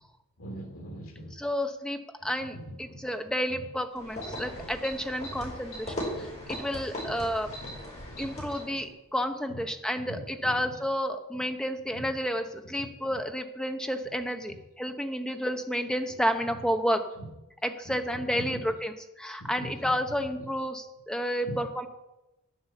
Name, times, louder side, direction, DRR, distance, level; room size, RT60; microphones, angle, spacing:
voice 1, 0.4-1.3 2.5-3.0 4.5-4.7 6.1-6.6 7.0-7.1 7.6-8.3 10.1-10.6 18.1-18.6 19.4-19.7, right 1 dB, 75° left, 1 dB, 2.9 m, -42 dB
voice 2, 1.3-7.5 8.2-17.0 17.6-21.9, equal, 5° left, 6 dB, 0.8 m, -31 dB
sound 1, 3.9-8.8, equal, 30° left, 4.3 m, -38 dB
9.4 x 7.8 x 7.3 m, 0.95 s
head